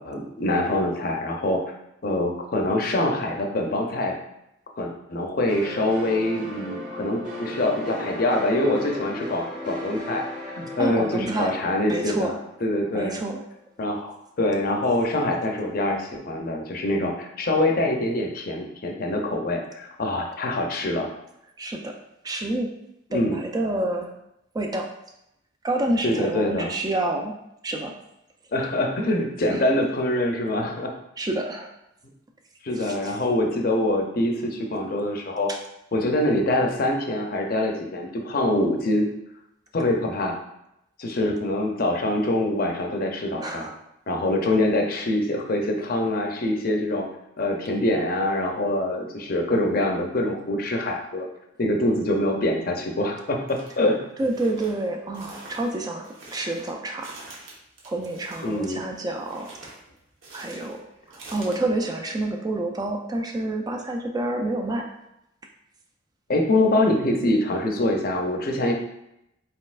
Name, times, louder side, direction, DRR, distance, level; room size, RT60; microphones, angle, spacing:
voice 1, 0.0-1.6 2.0-4.2 4.8-13.2 13.8-21.1 23.1-23.4 26.0-26.7 28.5-30.9 32.6-35.5 35.9-39.1 39.7-40.4 41.0-43.7 44.1-47.1 47.4-51.3 51.6-54.0 58.4-58.8 66.3-68.7, left 1 dB, 50° left, 2 dB, 0.6 m, -24 dB
sound 1, 5.5-13.0, left 1 dB, 40° right, 1.2 m, -36 dB
voice 2, 10.8-11.5 11.9-12.3 12.9-13.4 21.6-21.9 22.2-22.7 23.1-24.1 24.5-24.9 25.6-27.4 27.6-27.9 29.5-29.6 31.2-31.7 32.8-33.2 43.4-43.7 54.2-57.2 57.9-59.5 60.3-60.8 61.1-64.9, right 2 dB, 20° right, 2 dB, 0.3 m, -28 dB
sound 2, 53.5-53.7 54.2-61.6, right 2 dB, 80° right, 1.1 m, -46 dB
4.2 x 4.0 x 2.4 m, 0.83 s
head